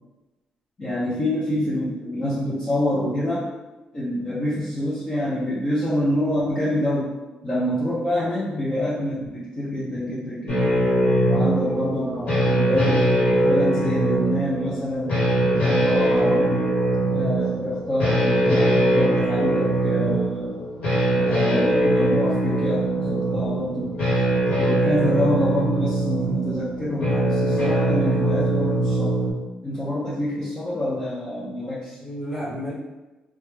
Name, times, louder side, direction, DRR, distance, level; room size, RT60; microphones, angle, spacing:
voice 1, 0.8-3.4 3.9-7.1 7.4-10.6 11.3-12.1 12.4-13.0 13.4-15.2 15.5-16.7 17.1-20.5 21.1-23.9 24.5-29.2 29.6-32.0, left 1 dB, 25° left, -9 dB, 0.6 m, -26 dB
sound 1, 10.5-29.3, right 1 dB, 60° left, 1.4 m, -22 dB
voice 2, 11.7-12.4 32.0-32.7, equal, 5° left, -7 dB, 0.9 m, -32 dB
3.0 x 2.2 x 3.3 m, 1.1 s
cardioid pair, 140°, 3 cm